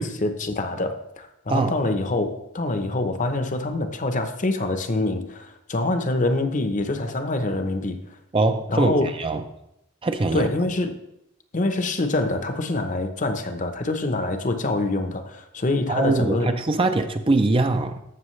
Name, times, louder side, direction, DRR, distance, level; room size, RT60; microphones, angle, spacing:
voice 1, 0.0-8.0 8.7-9.1 10.3-10.9 11.5-16.5, left 2 dB, 35° left, 0.8 m, -25 dB
voice 2, 8.3-9.4 10.0-10.5 15.9-18.0, right 2 dB, 25° right, 0.5 m, -22 dB
15.0 x 6.2 x 3.2 m
head